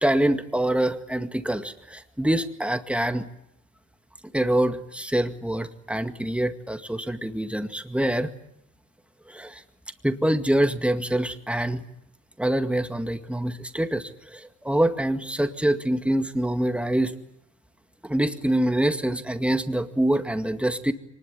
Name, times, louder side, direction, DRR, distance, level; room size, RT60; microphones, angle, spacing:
voice 1, 0.0-3.3 4.3-8.3 9.3-9.6 10.0-11.8 12.4-17.1 18.0-20.9, right 1 dB, 5° right, 8 dB, 2.0 m, -25 dB
24.5 x 20.0 x 9.9 m, 0.82 s
cardioid pair, 90°, 30 cm